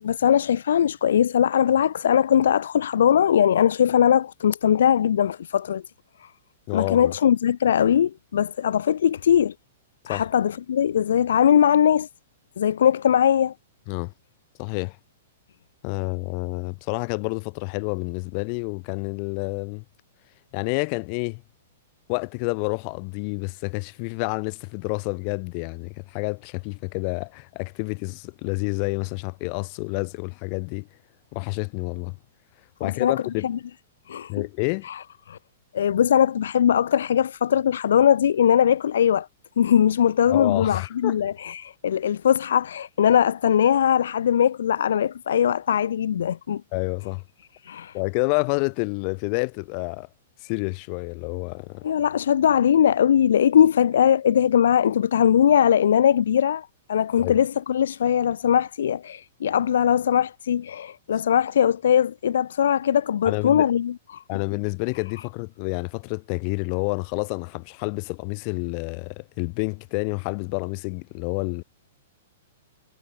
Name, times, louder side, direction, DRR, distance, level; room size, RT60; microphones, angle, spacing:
voice 1, 0.0-5.8 6.2-6.3 6.7-9.5 10.1-12.1 12.6-13.5 32.8-33.6 34.1-34.4 34.8-35.4 35.7-39.3 39.6-46.6 47.6-48.0 51.8-64.4, left 9 dB, 65° left, 1.6 m, -20 dB
voice 2, 6.7-7.1 10.0-10.2 13.9-14.1 14.6-15.0 15.8-19.8 20.5-21.4 22.1-30.9 31.3-32.2 32.8-33.5 34.3-34.9 40.3-41.1 46.7-47.2 47.9-50.1 50.4-51.8 57.2-57.3 63.2-63.7 64.3-71.6, left 40 dB or more, 40° left, 1.1 m, -29 dB
figure-of-eight pair, 110°, 0 cm